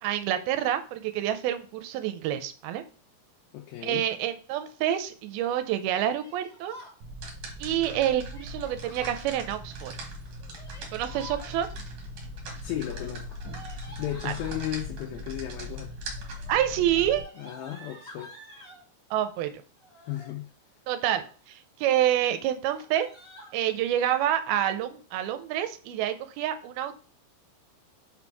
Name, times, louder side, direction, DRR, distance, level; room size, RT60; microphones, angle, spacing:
voice 1, 0.0-2.8 3.8-6.8 7.6-10.0 10.9-11.7 14.2-14.3 16.5-17.2 19.1-19.5 20.9-23.1 23.5-27.0, right 11 dB, 80° right, 9 dB, 2.5 m, -28 dB
voice 2, 3.5-4.1 12.4-13.4 13.9-16.0 17.4-18.3 20.1-20.5, left 13 dB, 80° left, 1 dB, 2.5 m, -35 dB
Yell, 6.2-7.0 8.3-9.2 10.4-11.5 12.8-14.6 15.5-15.9 16.2-18.8 19.8-20.3 20.9-21.4 21.8-21.9 22.2-22.3 22.6-23.5, left 1 dB, 20° left, 1.2 m, -49 dB
sound 1, 7.0-17.2, equal, 55° right, 2.3 m, -39 dB
5.8 x 4.4 x 4.6 m, 0.39 s
omnidirectional pair, 4.5 m